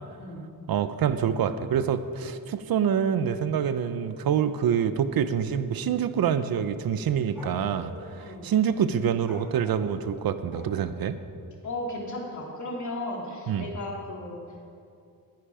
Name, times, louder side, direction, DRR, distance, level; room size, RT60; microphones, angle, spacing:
voice 1, 0.7-11.2 13.5-13.7, right 8 dB, 80° right, 11 dB, 0.9 m, -26 dB
sound 1, 7.3-7.9 9.2-11.0, equal, 5° right, 3.9 m, -45 dB
voice 2, 11.6-14.4, left 1 dB, 55° left, -2 dB, 3.4 m, -35 dB
20.5 x 10.5 x 5.0 m, 2.4 s
wide cardioid pair, 145°, 35 cm